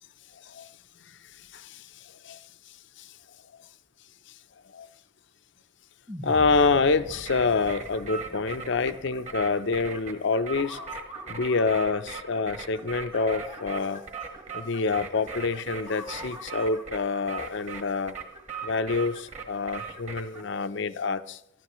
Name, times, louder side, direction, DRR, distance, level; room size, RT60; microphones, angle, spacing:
voice 1, 0.3-0.7 1.1-2.4 3.0-3.1 4.7-4.9 6.2-10.9 11.3-14.0 14.5-18.1 18.6-21.4, left 4 dB, 60° left, 12 dB, 0.6 m, -27 dB
sound 1, 6.1-10.4, equal, 10° right, 0.8 m, -43 dB
sound 2, 6.3-20.4, right 4 dB, 35° right, 1.4 m, -40 dB
23.0 x 13.5 x 3.1 m, 0.79 s
head